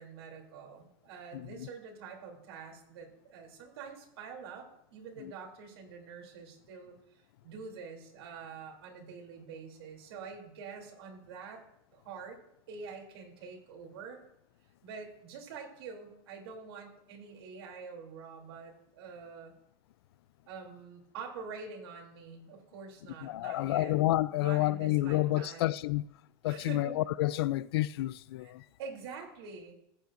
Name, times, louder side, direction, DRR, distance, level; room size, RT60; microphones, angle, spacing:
voice 1, 0.0-7.0 7.4-11.6 11.9-12.4 12.7-14.2 14.8-19.5 20.5-23.9 24.3-25.7 26.5-27.0 28.4-28.5 28.8-29.7, right 5 dB, 90° right, 3.0 m, -46 dB
voice 2, 1.3-1.7 5.2-5.3 23.2-26.1 26.4-28.6, left 16 dB, 90° left, 0.4 m, -30 dB
15.0 x 9.4 x 2.6 m
supercardioid pair, 155°, 13 cm